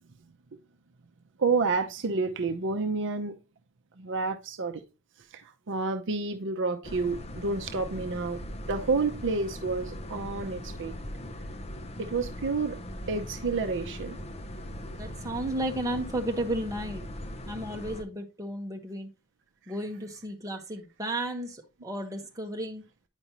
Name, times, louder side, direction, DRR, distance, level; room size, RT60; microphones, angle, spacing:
voice 1, 1.4-3.3 4.0-4.8 5.3-11.0 12.0-12.8 13.1-14.2, right 4 dB, 55° right, 0.6 m, -29 dB
sound 1, 6.8-18.0, left 1 dB, 30° left, 0.7 m, -40 dB
voice 2, 15.0-17.0 17.5-19.1 19.7-22.8, right 1 dB, 15° right, 1.1 m, -33 dB
9.0 x 5.2 x 2.9 m
head